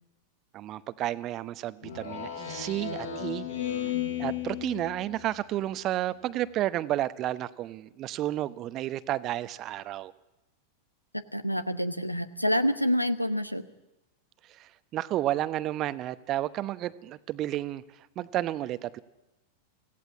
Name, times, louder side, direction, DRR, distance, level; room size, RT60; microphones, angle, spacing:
voice 1, 0.5-3.5 4.2-10.1 14.5-17.8 18.2-19.0, right 14 dB, 35° right, 15 dB, 0.8 m, -31 dB
Speech synthesizer, 1.8-5.3, left 9 dB, 70° left, 5.8 m, -34 dB
voice 2, 11.1-13.7, equal, 90° left, 13 dB, 1.0 m, -27 dB
25.5 x 16.5 x 8.6 m, 0.99 s
figure-of-eight pair, 90°, 0 cm